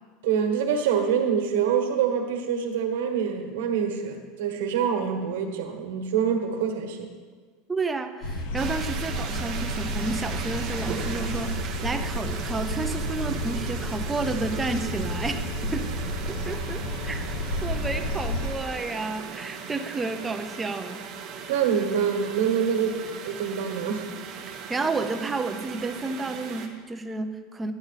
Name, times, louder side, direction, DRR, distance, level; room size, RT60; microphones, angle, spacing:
voice 1, 0.2-7.1 21.5-24.1, right 7 dB, 75° right, 4 dB, 1.4 m, -25 dB
voice 2, 7.7-15.9 16.3-17.3 17.6-21.0 24.5-27.7, right 3 dB, 10° right, 7 dB, 0.5 m, -31 dB
sound 1, 8.2-18.5, left 1 dB, 75° left, 1.0 m, -31 dB
sound 2, 8.6-26.7, right 6 dB, 30° right, 0.9 m, -38 dB
10.5 x 9.2 x 4.1 m, 1.5 s
supercardioid pair, 175°, 0 cm